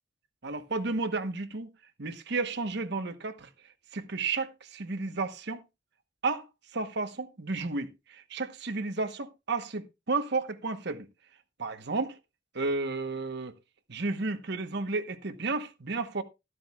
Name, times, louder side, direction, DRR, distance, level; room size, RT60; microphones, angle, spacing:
voice 1, 0.4-1.7 2.0-3.5 3.9-5.6 6.2-6.4 6.7-11.1 11.6-12.2 12.5-13.5 13.9-16.2, right 3 dB, 55° right, 1.1 m, -32 dB
12.5 x 12.5 x 2.4 m
head